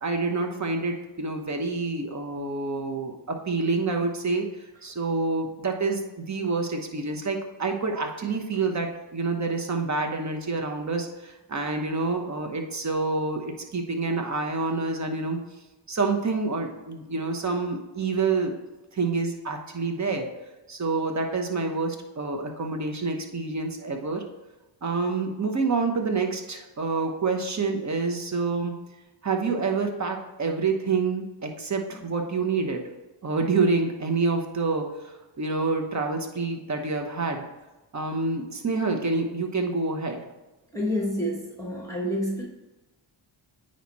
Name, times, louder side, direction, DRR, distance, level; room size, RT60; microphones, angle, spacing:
voice 1, 0.0-4.5 4.8-15.4 15.9-18.5 18.9-20.3 20.7-24.2 24.8-28.7 29.2-32.8 33.2-37.4 37.9-40.2, right 3 dB, 35° right, 3 dB, 1.1 m, -27 dB
voice 2, 40.7-42.4, equal, 5° left, -1 dB, 1.1 m, -28 dB
9.0 x 3.1 x 4.2 m, 1.1 s
cardioid pair, 70°, 49 cm